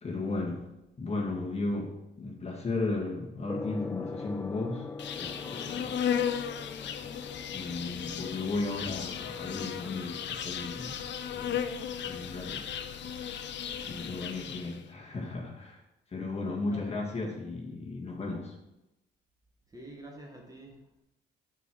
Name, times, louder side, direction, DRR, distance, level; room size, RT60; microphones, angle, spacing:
voice 1, 0.0-0.7 1.0-4.9 5.2-5.9 7.5-10.9 11.3-11.7 12.0-12.7 13.9-15.8 16.1-18.5, left 3 dB, 30° left, -1 dB, 1.9 m, -35 dB
Gong, 3.5-15.4, left 3 dB, 15° left, 0.4 m, -45 dB
Insect, 5.0-14.8, left 8 dB, 65° left, 0.7 m, -35 dB
voice 2, 16.4-17.2 19.7-21.0, right 1 dB, 20° right, 0 dB, 1.8 m, -48 dB
6.8 x 4.8 x 6.2 m, 0.93 s
cardioid pair, 90°, 20 cm